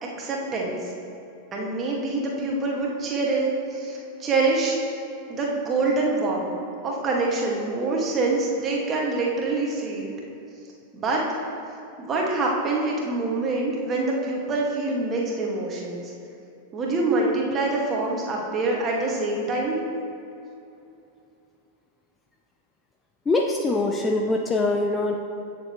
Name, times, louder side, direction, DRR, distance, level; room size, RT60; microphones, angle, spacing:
voice 1, 0.0-0.9 1.5-4.8 5.3-6.5 6.8-10.1 10.9-11.3 12.0-16.1 16.7-19.8, right 3 dB, 25° right, -2 dB, 2.0 m, -25 dB
voice 2, 23.3-25.2, left 2 dB, 15° left, 2 dB, 0.6 m, -23 dB
16.0 x 6.9 x 3.2 m, 2.7 s
figure-of-eight pair, 90°, 0 cm